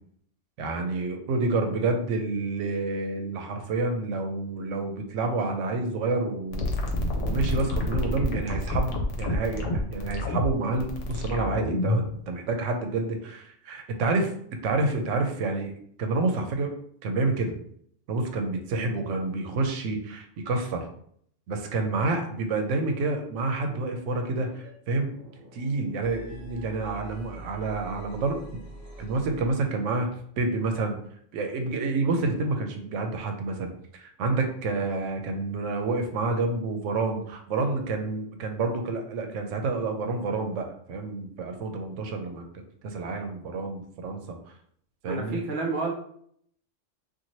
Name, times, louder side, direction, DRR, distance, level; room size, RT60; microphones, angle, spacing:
voice 1, 0.6-6.6 7.2-14.3 14.6-15.7 16.0-16.7 17.0-17.5 18.1-20.8 21.5-25.1 25.5-28.4 29.0-30.1 30.4-31.0 31.3-42.5 42.8-44.4 45.0-45.4, right 3 dB, 80° right, 5 dB, 0.9 m, -28 dB
sound 1, 6.5-12.1, left 1 dB, 80° left, 1.0 m, -28 dB
sound 2, 24.3-24.7 25.0-29.9, right 1 dB, 30° right, 1.3 m, -45 dB
voice 2, 45.1-45.9, right 3 dB, 55° right, 0 dB, 0.6 m, -29 dB
2.7 x 2.5 x 2.9 m, 0.64 s
omnidirectional pair, 1.2 m